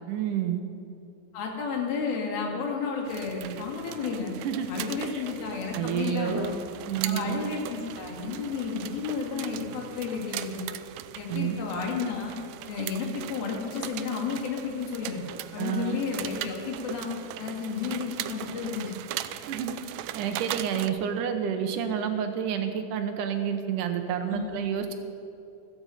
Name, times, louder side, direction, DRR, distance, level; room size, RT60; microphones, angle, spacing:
voice 1, 0.1-0.6 4.4-4.7 5.0-5.2 5.7-6.5 6.9-7.4 11.3-11.6 15.6-16.0 19.5-19.7 20.2-24.9, right 8 dB, 70° right, 6 dB, 2.2 m, -29 dB
voice 2, 1.3-4.3 4.7-6.6 7.0-10.7 11.2-12.3 12.7-15.2 15.5-17.1 17.4-18.9 24.3-24.6, left 5 dB, 75° left, 1 dB, 3.8 m, -32 dB
sound 1, 3.0-20.9, right 13 dB, 90° right, 1.9 m, -39 dB
15.5 x 13.5 x 5.7 m, 2.7 s
omnidirectional pair, 4.3 m